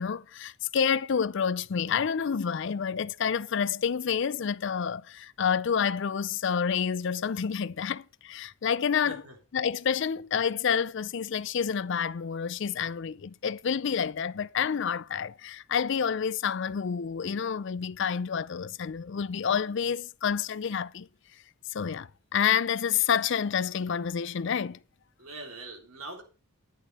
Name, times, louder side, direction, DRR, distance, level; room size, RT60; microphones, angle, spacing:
voice 1, 0.0-9.2 9.5-21.1 21.7-24.8, left 7 dB, 55° left, 0.4 m, -29 dB
voice 2, 25.2-26.2, right 2 dB, 80° right, 3.6 m, -42 dB
10.5 x 10.0 x 4.2 m
head